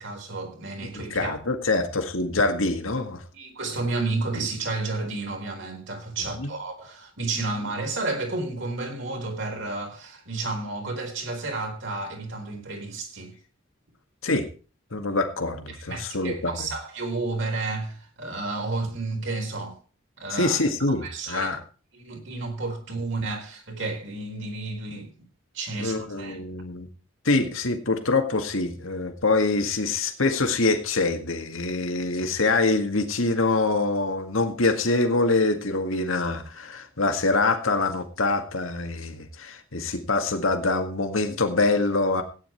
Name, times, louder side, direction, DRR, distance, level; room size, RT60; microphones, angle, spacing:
voice 1, 0.0-1.4 3.3-13.3 15.7-19.8 20.2-20.6 20.9-21.6 21.9-25.1 25.5-26.4, right 3 dB, 65° right, 4.3 m, -31 dB
voice 2, 0.9-3.2 6.4-6.5 14.2-14.4 14.9-16.7 20.3-21.6 25.8-26.9 27.2-42.2, left 3 dB, 80° left, 1.9 m, -25 dB
16.0 x 9.8 x 4.5 m
head